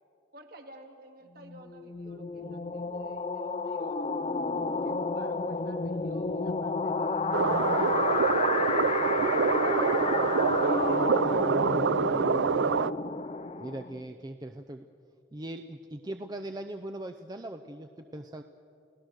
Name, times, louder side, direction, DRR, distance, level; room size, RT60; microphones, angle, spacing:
voice 1, 0.3-4.1 4.8-12.2, right 2 dB, 55° right, 4 dB, 2.1 m, -52 dB
sound 1, 1.4-14.1, left 4 dB, 35° left, 0.5 m, -31 dB
sound 2, 7.3-12.9, right 5 dB, 90° right, 0.5 m, -26 dB
voice 2, 13.6-14.8 15.3-18.4, right 1 dB, 20° right, 6 dB, 0.6 m, -40 dB
29.5 x 17.5 x 6.5 m, 2.6 s
head